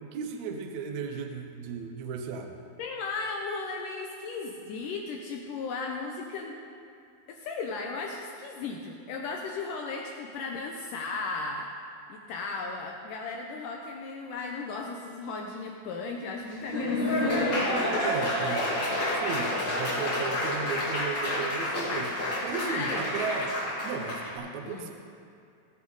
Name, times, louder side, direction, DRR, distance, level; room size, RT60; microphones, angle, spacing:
voice 1, 0.0-2.6 18.0-18.8 19.1-24.9, right 5 dB, 85° right, 5 dB, 1.6 m, -35 dB
voice 2, 2.8-6.6 7.3-11.7 12.1-18.1 18.5-18.9 22.6-23.0 24.6-24.9, left 4 dB, 80° left, 1 dB, 2.0 m, -36 dB
Laughter / Applause, 16.4-24.3, left 1 dB, 35° left, 2.1 m, -29 dB
18.0 x 8.2 x 3.9 m, 2.5 s
omnidirectional pair, 4.4 m